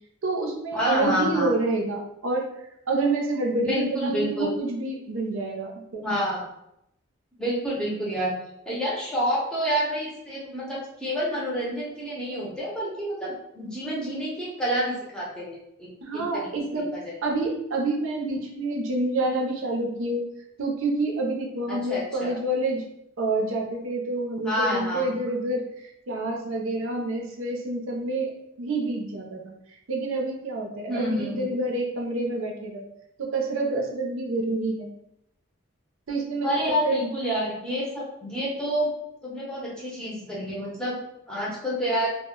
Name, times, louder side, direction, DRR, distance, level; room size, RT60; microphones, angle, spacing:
voice 1, 0.2-6.0 16.0-16.9 17.2-20.3 20.6-22.8 23.2-25.7 26.1-28.3 28.6-29.5 29.9-32.9 33.2-34.9 36.1-37.1, right 2 dB, 80° right, 1 dB, 0.5 m, -28 dB
voice 2, 0.7-1.5 3.6-4.5 6.0-6.4 7.4-8.3 8.7-16.4 16.7-16.8 21.7-22.4 24.4-25.2 30.9-31.5 36.4-38.9 39.2-41.0 41.3-42.1, equal, 5° left, -6 dB, 0.6 m, -28 dB
2.1 x 2.0 x 3.6 m, 0.80 s
head